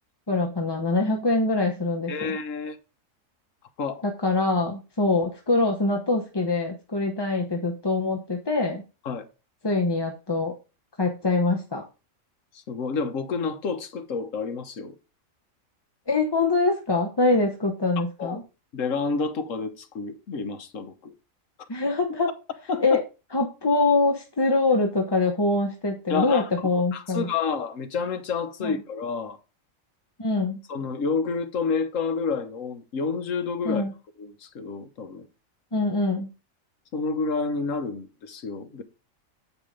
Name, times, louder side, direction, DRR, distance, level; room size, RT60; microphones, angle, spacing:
voice 1, 0.3-2.1 4.0-8.8 9.6-10.5 11.0-11.8 16.1-18.4 21.7-22.3 22.8-23.0 23.3-27.3 28.6-28.7 30.2-30.6 33.6-33.9 35.7-36.3, left 3 dB, 25° left, 0.7 m, -24 dB
voice 2, 2.1-2.8 3.8-4.0 9.0-9.2 12.5-14.9 18.0-18.4 18.7-21.1 22.7-23.0 26.1-26.5 26.9-29.4 30.7-33.8 34.2-35.3 36.9-38.8, left 4 dB, 70° left, 1.4 m, -29 dB
8.3 x 4.8 x 5.0 m
omnidirectional pair, 1.4 m